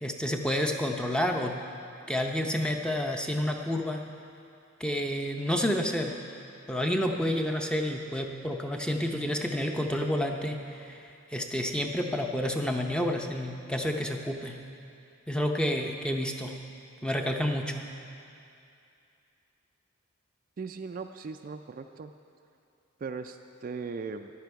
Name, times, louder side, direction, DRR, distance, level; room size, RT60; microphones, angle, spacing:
voice 1, 0.0-1.5 2.1-4.0 4.8-6.1 6.7-11.0 11.3-14.5 15.3-16.5 17.0-17.9, equal, 5° left, 3 dB, 0.6 m, -29 dB
voice 2, 20.6-22.1 23.0-24.3, right 5 dB, 40° right, 6 dB, 0.3 m, -38 dB
14.0 x 10.5 x 4.7 m, 2.6 s
head